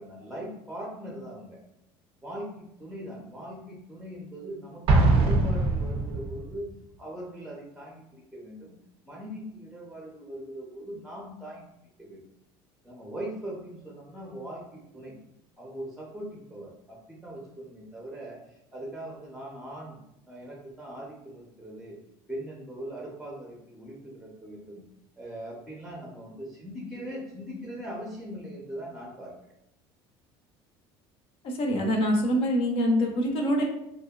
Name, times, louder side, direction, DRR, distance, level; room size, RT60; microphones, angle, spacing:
voice 1, 0.0-1.6 2.2-6.7 7.0-8.8 9.0-11.6 12.0-12.2 12.8-15.2 15.6-18.4 18.7-20.0 20.2-22.0 22.3-24.8 25.2-29.3, right 1 dB, 5° right, -2 dB, 0.6 m, -40 dB
Explosion, 4.9-6.5, right 2 dB, 55° right, 0.5 m, -22 dB
voice 2, 31.4-33.6, equal, 55° left, 2 dB, 0.6 m, -25 dB
2.6 x 2.2 x 2.3 m, 0.82 s
supercardioid pair, 100°, 11 cm